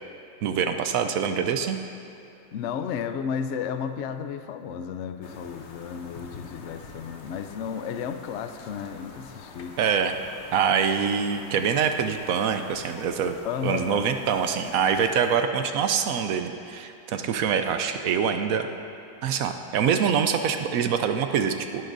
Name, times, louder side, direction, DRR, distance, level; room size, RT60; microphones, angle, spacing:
voice 1, 0.4-1.8 9.8-10.2 10.5-13.4 13.6-18.7 19.2-21.8, right 7 dB, 70° right, 7 dB, 0.8 m, -25 dB
voice 2, 2.5-9.8 13.4-14.1, left 7 dB, 85° left, 9 dB, 0.6 m, -33 dB
sound 1, 5.2-15.4, left 4 dB, 50° left, 0.9 m, -46 dB
19.0 x 11.5 x 2.6 m, 2.6 s
omnidirectional pair, 1.9 m